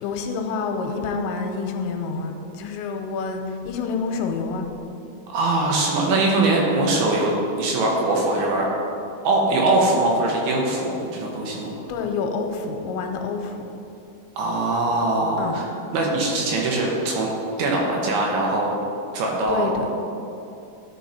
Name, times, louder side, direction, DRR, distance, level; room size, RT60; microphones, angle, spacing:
voice 1, 0.0-4.7 5.7-5.8 11.9-13.6 15.4-15.6 19.5-19.9, left 4 dB, 90° left, 4 dB, 3.0 m, -28 dB
voice 2, 5.3-8.7 9.2-11.7 14.4-15.7 15.9-17.3 17.6-18.8 19.1-19.7, right 2 dB, 75° right, -1 dB, 2.6 m, -22 dB
12.5 x 4.6 x 4.2 m, 2.7 s
omnidirectional pair, 5.1 m